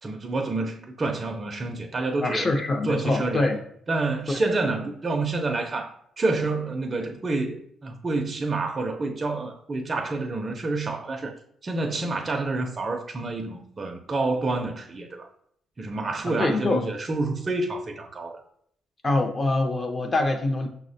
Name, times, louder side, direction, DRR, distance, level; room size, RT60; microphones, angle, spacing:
voice 1, 0.0-2.5 2.8-3.5 3.9-11.3 11.6-15.3 15.8-18.4, right 3 dB, 35° right, 0.4 m, -28 dB
voice 2, 2.2-3.6 4.3-4.4 16.2-16.8 19.0-20.7, left 2 dB, 30° left, 0.5 m, -24 dB
5.6 x 2.0 x 2.6 m
cardioid pair, 90°, 0 cm